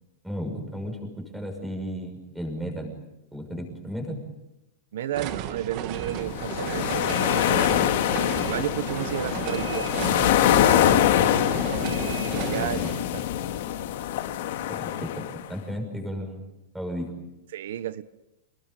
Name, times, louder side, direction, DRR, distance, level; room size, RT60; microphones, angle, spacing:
voice 1, 0.2-2.9 3.3-4.2 12.5-13.0 14.7-16.5 16.7-17.1, equal, 5° right, 3 dB, 6.0 m, -34 dB
voice 2, 4.9-7.9 8.4-11.5 12.2-13.2 17.5-18.0, right 11 dB, 75° right, 13 dB, 1.1 m, -33 dB
sound 1, 5.1-12.9, right 9 dB, 35° right, 1.9 m, -34 dB
sound 2, 6.2-15.5, left 11 dB, 60° left, 2.3 m, -24 dB
29.0 x 19.5 x 9.1 m, 0.93 s
supercardioid pair, 170°, 0 cm